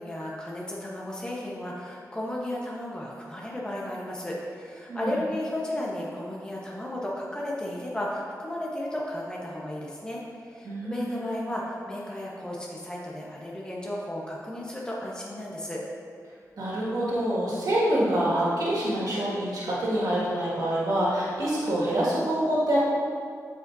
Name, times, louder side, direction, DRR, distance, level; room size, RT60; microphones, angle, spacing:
voice 1, 0.0-15.8, left 1 dB, 15° left, -4 dB, 1.1 m, -34 dB
voice 2, 10.6-11.2 16.6-22.8, right 1 dB, 85° right, -7 dB, 2.0 m, -26 dB
13.0 x 5.2 x 2.7 m, 2.2 s
wide cardioid pair, 105°, 6 cm